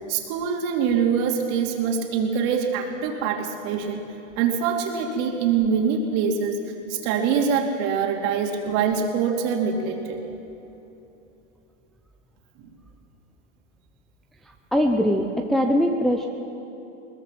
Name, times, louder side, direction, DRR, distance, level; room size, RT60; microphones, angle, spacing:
voice 1, 0.1-4.0 4.4-6.6 6.9-10.2, right 6 dB, 40° right, 2 dB, 2.9 m, -24 dB
voice 2, 14.7-16.3, equal, ahead, 2 dB, 0.5 m, -21 dB
21.5 x 20.0 x 6.1 m, 2.9 s
hypercardioid pair, 130°, 38 cm